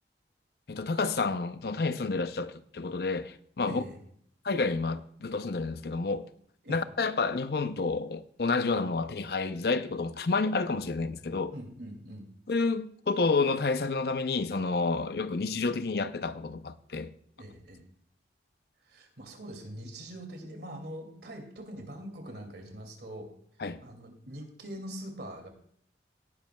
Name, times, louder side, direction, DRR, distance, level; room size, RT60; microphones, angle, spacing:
voice 1, 0.7-3.8 4.4-6.3 6.7-11.5 12.5-17.1 23.6-23.8, left 3 dB, 60° left, 0.6 m, -29 dB
voice 2, 3.7-4.0 6.6-6.8 11.5-12.3 17.4-17.8 18.8-23.3 23.8-25.5, right 1 dB, 65° right, 2.4 m, -43 dB
17.5 x 10.5 x 2.3 m
head